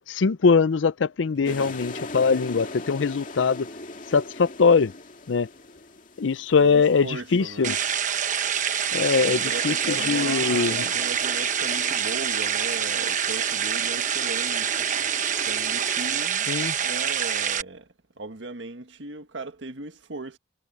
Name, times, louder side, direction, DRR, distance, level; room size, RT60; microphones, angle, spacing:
voice 1, 0.1-3.7 4.1-4.9 5.3-5.5 6.2-7.8 8.9-10.9 16.5-16.7, left 5 dB, 85° left, 0.5 m, -22 dB
sound 1, 1.4-16.1, left 2 dB, 45° left, 2.3 m, -41 dB
voice 2, 1.4-1.8 6.6-7.8 9.2-14.9 15.4-16.5 16.8-17.9 18.2-20.4, right 3 dB, 75° right, 1.6 m, -37 dB
sound 2, 7.6-17.6, right 8 dB, 40° right, 1.1 m, -26 dB
head